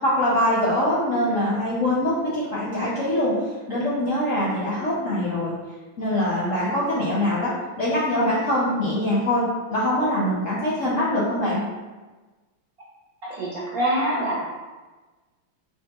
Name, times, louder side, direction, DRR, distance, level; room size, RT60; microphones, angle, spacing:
voice 1, 0.0-3.3 3.7-5.5 6.0-7.5 7.8-9.4 9.7-11.6, left 1 dB, 65° left, -7 dB, 0.8 m, -23 dB
voice 2, 13.2-14.4, right 1 dB, 65° right, -6 dB, 0.9 m, -25 dB
5.0 x 2.3 x 2.9 m, 1.2 s
omnidirectional pair, 2.2 m